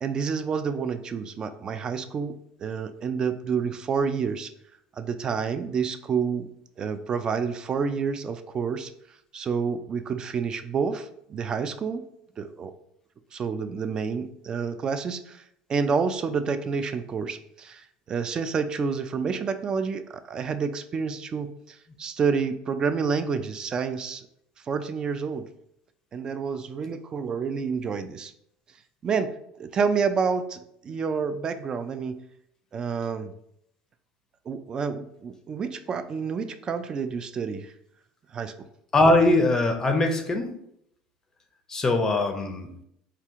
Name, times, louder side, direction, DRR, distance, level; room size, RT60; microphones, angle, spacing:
voice 1, 0.0-4.5 5.0-6.5 6.8-8.9 9.3-12.0 12.4-12.7 13.3-15.4 15.7-24.3 24.7-25.5 26.1-28.3 29.0-29.3 29.6-32.2 32.7-33.3 34.5-37.7 38.3-38.5, right 5 dB, 30° right, 10 dB, 0.3 m, -29 dB
voice 2, 38.9-40.6 41.7-42.8, left 2 dB, 20° left, 5 dB, 0.5 m, -21 dB
4.4 x 2.4 x 3.6 m, 0.73 s
cardioid pair, 135°, 3 cm